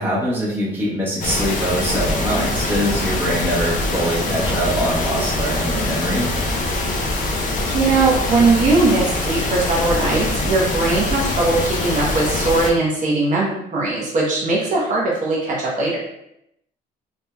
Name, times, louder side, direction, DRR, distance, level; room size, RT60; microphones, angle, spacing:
voice 1, 0.0-6.3, equal, 10° right, -7 dB, 1.0 m, -23 dB
sound 1, 1.2-12.7, left 2 dB, 50° left, 0.5 m, -23 dB
voice 2, 7.7-16.0, right 3 dB, 50° right, -4 dB, 0.9 m, -19 dB
3.4 x 2.7 x 2.2 m, 0.78 s
cardioid pair, 110°, 17 cm